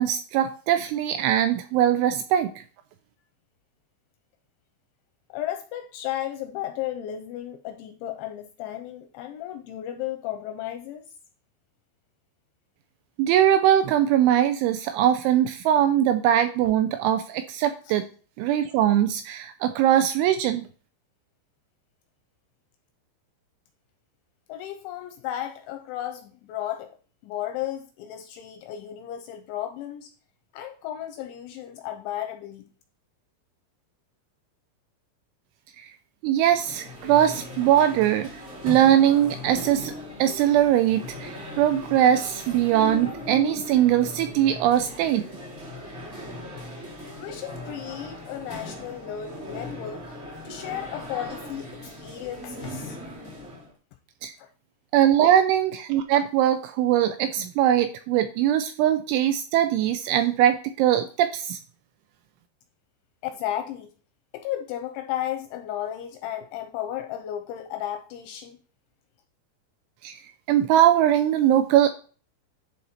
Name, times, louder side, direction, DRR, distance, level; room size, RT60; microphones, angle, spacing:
voice 1, 0.0-2.6 13.2-18.1 18.4-20.6 35.8-35.9 36.2-38.3 38.6-39.9 40.2-45.2 54.2-54.3 54.9-61.6 70.0-70.2 70.5-71.9, right 11 dB, 85° right, 9 dB, 2.7 m, -21 dB
voice 2, 5.3-11.0 17.9-18.0 24.5-26.9 27.2-30.1 30.5-32.7 47.2-50.0 50.4-53.0 54.4-54.5 63.2-63.9 64.3-68.6, left 11 dB, 85° left, 6 dB, 2.7 m, -34 dB
sound 1, 36.4-53.7, left 1 dB, 25° right, 1.5 m, -39 dB
11.0 x 4.0 x 4.2 m, 0.40 s
omnidirectional pair, 5.8 m